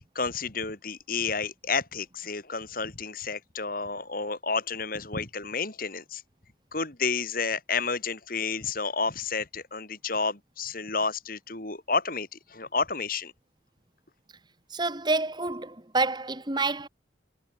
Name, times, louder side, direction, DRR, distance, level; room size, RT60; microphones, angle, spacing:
voice 1, 0.0-6.2 6.7-13.3, left 4 dB, 45° left, 2.9 m, -31 dB
voice 2, 14.7-16.9, right 3 dB, 25° right, 1.7 m, -28 dB
head